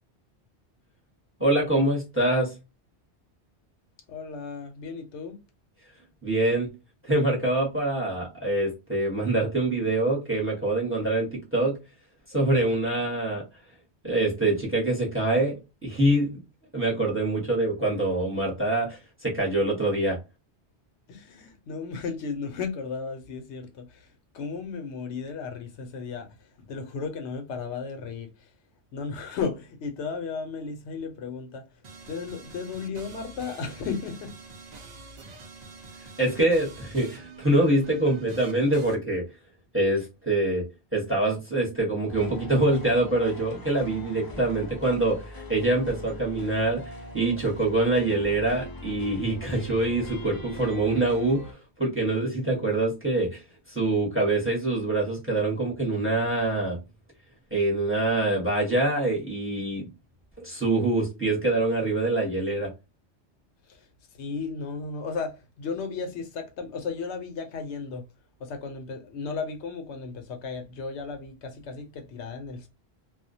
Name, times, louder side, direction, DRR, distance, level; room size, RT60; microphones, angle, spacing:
voice 1, 1.4-2.6 6.2-6.7 7.0-11.8 12.3-13.4 14.0-16.4 16.7-20.2 36.2-39.3 39.7-56.8 57.5-59.9 60.4-62.7, right 2 dB, 10° right, 0.9 m, -25 dB
voice 2, 4.1-5.4 21.1-23.8 24.3-26.3 26.7-28.3 28.9-31.6 32.1-34.3 64.2-68.0 68.4-72.7, left 5 dB, 85° left, 0.9 m, -34 dB
sound 1, 31.8-39.0, right 4 dB, 50° right, 0.5 m, -46 dB
sound 2, 42.1-51.5, left 2 dB, 30° left, 0.4 m, -41 dB
2.3 x 2.1 x 2.6 m
omnidirectional pair, 1.2 m